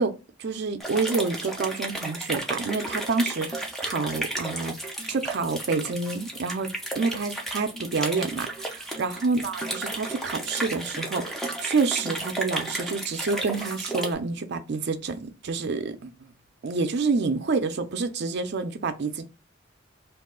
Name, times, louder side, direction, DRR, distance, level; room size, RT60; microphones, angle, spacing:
voice 1, 0.0-4.7 5.1-16.3 16.6-19.3, right 4 dB, 60° right, 0.5 m, -28 dB
sound 1, 0.8-14.1, right 1 dB, ahead, 0.6 m, -33 dB
2.7 x 2.3 x 3.7 m
head